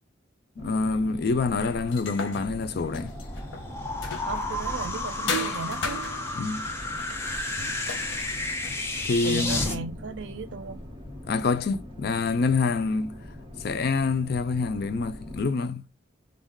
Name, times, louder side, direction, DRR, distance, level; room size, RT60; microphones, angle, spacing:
voice 1, 0.6-3.1 6.4-6.7 9.1-9.9 11.2-13.2 13.6-15.9, left 4 dB, 55° left, 0.4 m, -26 dB
sound 1, 0.6-15.4, left 1 dB, 30° right, 1.0 m, -43 dB
sound 2, 1.6-4.6 5.3-9.1, left 3 dB, 85° left, 0.7 m, -36 dB
sound 3, 2.3-9.8, left 2 dB, 15° left, 0.6 m, -32 dB
voice 2, 4.3-6.0 7.6-7.7 9.2-10.8, right 4 dB, 75° right, 0.5 m, -36 dB
2.4 x 2.3 x 3.6 m
head